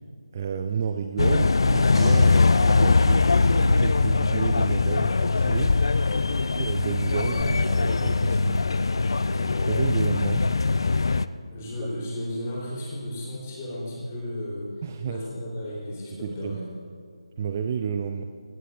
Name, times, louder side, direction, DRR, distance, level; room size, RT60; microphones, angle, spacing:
voice 1, 0.3-5.8 6.5-8.6 9.7-10.5 14.8-15.3 16.1-16.6 17.4-18.2, right 7 dB, 25° right, 7 dB, 0.4 m, -31 dB
sound 1, 1.2-11.3, left 3 dB, 55° left, 0.4 m, -21 dB
sound 2, 1.8-4.3 7.4-7.5, right 3 dB, 5° right, 0.8 m, -45 dB
voice 2, 6.1-6.4 9.2-9.6 11.5-14.7 15.0-16.6, left 1 dB, 25° left, -5 dB, 3.9 m, -34 dB
16.5 x 16.5 x 2.7 m, 2.2 s
figure-of-eight pair, 155°, 3 cm